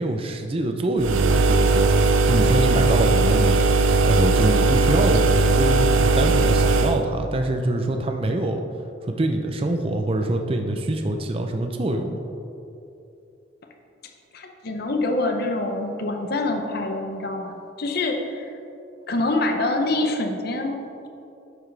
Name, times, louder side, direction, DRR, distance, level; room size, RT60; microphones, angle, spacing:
voice 1, 0.0-3.6 4.0-8.6 9.1-12.2, right 1 dB, 30° right, 4 dB, 0.5 m, -24 dB
sound 1, 1.0-7.0, right 3 dB, 85° right, 0.5 m, -18 dB
voice 2, 14.3-18.5 19.1-21.1, left 2 dB, 50° left, 4 dB, 0.8 m, -26 dB
10.5 x 7.1 x 3.3 m, 2.7 s
head